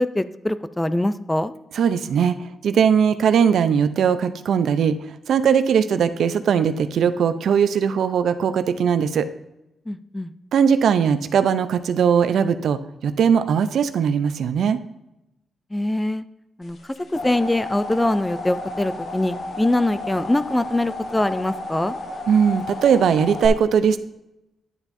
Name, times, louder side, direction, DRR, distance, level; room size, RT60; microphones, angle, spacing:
voice 1, 0.0-1.5 9.9-10.3 15.7-16.2 16.6-21.9, left 1 dB, 10° left, 13 dB, 0.3 m, -23 dB
voice 2, 1.7-2.4 2.6-5.0 5.3-9.3 10.5-14.8 22.3-24.0, right 7 dB, 80° right, 11 dB, 0.5 m, -19 dB
sound 1, 16.8-23.5, left 2 dB, 55° left, 1.0 m, -33 dB
11.0 x 7.2 x 2.6 m, 0.89 s
wide cardioid pair, 125°, 0 cm